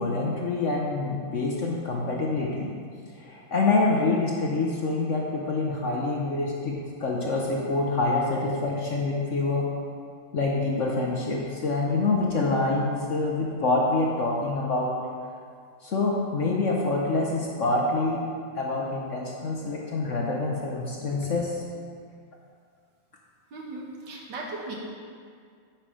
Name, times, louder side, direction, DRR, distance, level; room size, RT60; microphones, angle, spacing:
voice 1, 0.0-2.7 3.2-9.7 10.3-14.9 15.8-18.2 18.5-21.5, left 3 dB, 55° left, -2 dB, 0.9 m, -26 dB
voice 2, 23.5-24.8, right 2 dB, 75° right, -2 dB, 2.0 m, -37 dB
8.9 x 5.7 x 4.9 m, 2.1 s
omnidirectional pair, 2.0 m